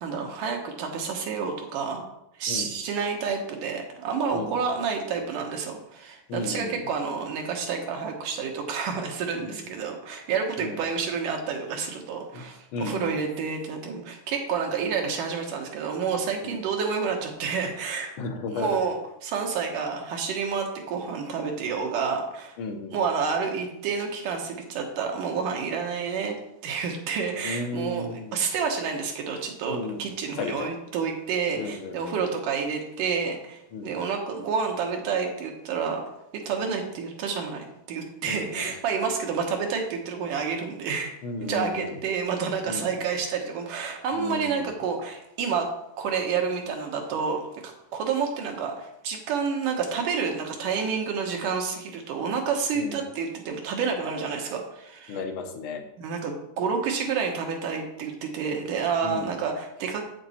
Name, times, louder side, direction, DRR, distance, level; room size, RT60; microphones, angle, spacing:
voice 1, 0.0-2.0 2.4-18.1 18.5-19.0 19.2-22.6 22.9-28.1 28.3-36.0 36.3-41.1 41.4-45.7 46.0-55.2 56.0-60.0, right 5 dB, 80° right, 2 dB, 2.9 m, -29 dB
voice 2, 4.3-4.7 6.3-6.9 9.4-9.7 10.6-10.8 12.3-12.5 12.7-13.1 16.4-16.6 18.2-18.8 22.6-23.0 27.4-28.4 29.7-30.1 30.4-30.7 31.6-32.2 33.7-33.9 38.3-38.7 41.2-42.0 42.7-42.9 44.1-44.7 52.7-53.0 55.1-55.9 59.0-59.3, left 3 dB, 65° left, 3 dB, 1.3 m, -34 dB
8.1 x 7.6 x 4.3 m, 0.82 s
omnidirectional pair, 3.7 m